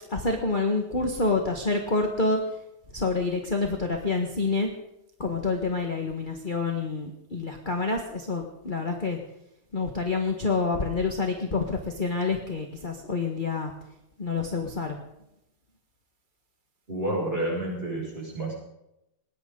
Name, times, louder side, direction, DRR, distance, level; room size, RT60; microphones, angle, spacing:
voice 1, 0.1-2.4 2.9-4.7 5.2-9.2 9.7-13.7 14.2-15.0, left 3 dB, 25° left, 3 dB, 1.5 m, -27 dB
voice 2, 16.9-18.6, right 1 dB, 25° right, -3 dB, 6.8 m, -29 dB
21.0 x 17.5 x 3.9 m, 0.86 s
omnidirectional pair, 2.4 m